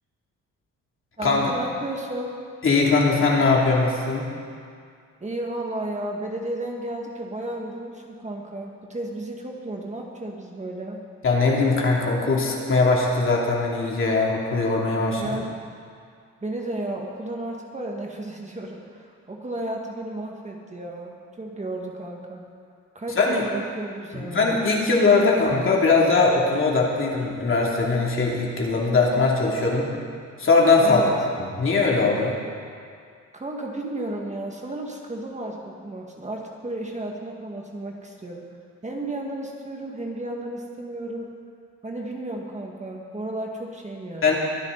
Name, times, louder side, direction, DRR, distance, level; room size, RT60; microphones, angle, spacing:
voice 1, 1.2-2.3 5.2-11.0 15.2-15.5 16.4-22.4 23.0-24.6 30.8-31.1 33.3-38.4 38.8-41.4 41.8-44.4, right 1 dB, 25° right, 0 dB, 1.9 m, -33 dB
voice 2, 2.6-4.2 11.2-15.4 23.1-23.5 24.1-29.9 30.4-31.0 31.4-32.3 44.2-44.4, left 3 dB, 45° left, -2 dB, 3.0 m, -20 dB
23.5 x 9.9 x 4.1 m, 2.2 s
cardioid pair, 90°, 30 cm